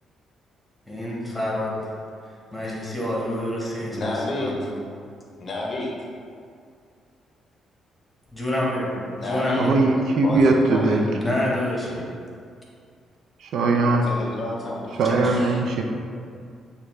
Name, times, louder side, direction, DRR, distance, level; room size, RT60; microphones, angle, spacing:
voice 1, 0.9-1.8 2.5-4.7 8.3-9.8 11.0-12.0 15.0-15.4, left 1 dB, 5° left, -5 dB, 1.2 m, -27 dB
voice 2, 3.9-4.5 5.4-5.9 9.2-9.7 10.2-11.0 14.0-15.6, left 2 dB, 45° left, -2 dB, 0.6 m, -30 dB
voice 3, 9.6-11.0 13.5-14.1 15.0-15.8, right 3 dB, 75° right, 3 dB, 0.4 m, -20 dB
6.5 x 2.2 x 3.1 m, 2.2 s
cardioid pair, 90°, 0 cm